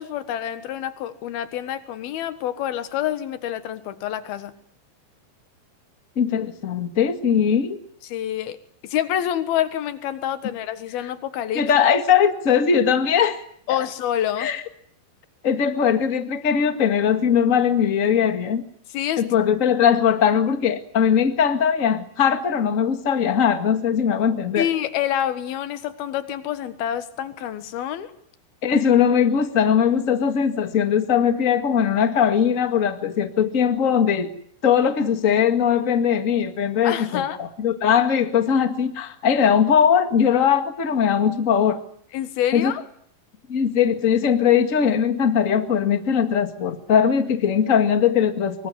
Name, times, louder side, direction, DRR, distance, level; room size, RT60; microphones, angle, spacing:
voice 1, 0.0-4.6 8.0-8.6 8.8-11.6 13.7-14.5 18.9-19.2 24.6-28.1 36.8-37.4 42.1-42.8, left 11 dB, 90° left, 11 dB, 3.4 m, -27 dB
voice 2, 6.1-7.8 11.5-13.4 14.4-14.6 15.4-18.6 19.2-24.7 28.6-34.3 34.6-41.8 42.5-42.7 43.5-48.7, left 8 dB, 30° left, 8 dB, 1.5 m, -20 dB
24.5 x 23.5 x 9.6 m, 0.64 s
omnidirectional pair, 4.2 m